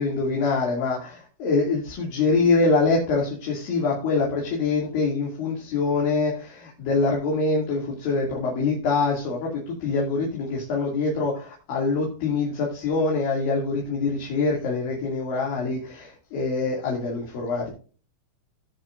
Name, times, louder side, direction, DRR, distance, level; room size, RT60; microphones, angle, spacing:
voice 1, 0.0-17.7, left 3 dB, 50° left, -2 dB, 3.7 m, -24 dB
17.5 x 7.1 x 2.5 m, 0.37 s
omnidirectional pair, 5.7 m